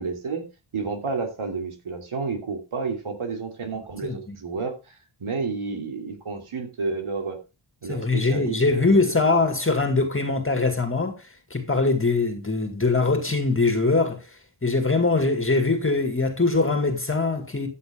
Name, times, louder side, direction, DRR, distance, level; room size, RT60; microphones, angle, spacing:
voice 1, 0.0-7.4 7.8-9.2, right 4 dB, 80° right, 3.0 m, -31 dB
voice 2, 4.0-4.4 7.9-11.2 11.5-14.2 14.6-17.7, left 3 dB, 25° left, 2.1 m, -22 dB
14.0 x 8.4 x 3.6 m
wide cardioid pair, 110°, 49 cm